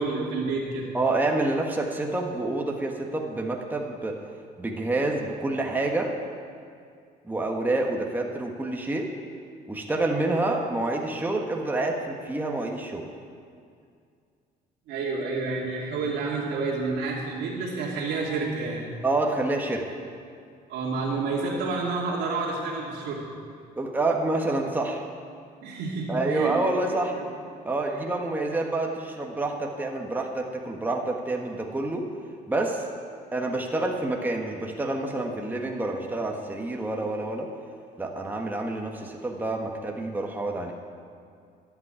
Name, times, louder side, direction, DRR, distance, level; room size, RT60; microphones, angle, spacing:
voice 1, 0.0-0.9 14.9-18.8 20.7-23.2 25.6-26.6 26.9-27.3, right 3 dB, 80° right, -5 dB, 2.3 m, -29 dB
voice 2, 0.9-4.2 4.6-6.1 7.2-9.1 9.7-13.1 19.0-19.8 23.8-25.0 26.1-27.1 27.6-32.1 32.5-32.9 33.3-37.5 38.0-40.7, right 2 dB, 10° right, 1 dB, 1.5 m, -28 dB
13.0 x 8.5 x 9.0 m, 2.3 s
cardioid pair, 110°, 17 cm